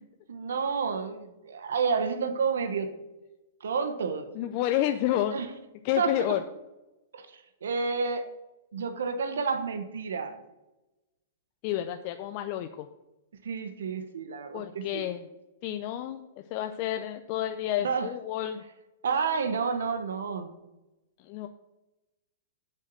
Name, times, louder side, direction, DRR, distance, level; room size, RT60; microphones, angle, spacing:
voice 1, 0.3-2.9 3.6-4.3 5.3-5.5 6.0-6.2 7.1-8.2 8.7-10.4 13.4-15.1 17.8-18.1 19.0-20.5, right 5 dB, 80° right, 8 dB, 1.2 m, -30 dB
voice 2, 4.3-5.4 5.8-6.4 11.6-12.9 14.5-15.2 15.6-18.6 21.2-21.5, left 12 dB, 45° left, 7 dB, 0.6 m, -30 dB
7.3 x 6.6 x 7.5 m, 0.99 s
hypercardioid pair, 130°, 0 cm